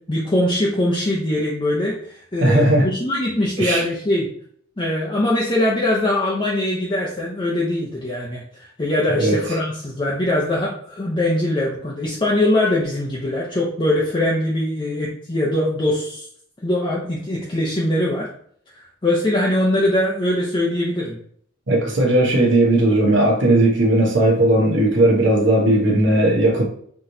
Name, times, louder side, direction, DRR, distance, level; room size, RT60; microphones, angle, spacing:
voice 1, 0.1-4.3 4.8-8.4 8.8-16.3 16.6-18.3 19.0-21.2, left 1 dB, 25° left, -4 dB, 0.7 m, -22 dB
voice 2, 2.4-2.9 3.6-3.8 9.1-9.4 21.7-26.6, right 1 dB, 65° right, -1 dB, 1.1 m, -17 dB
5.8 x 3.1 x 2.7 m, 0.62 s
head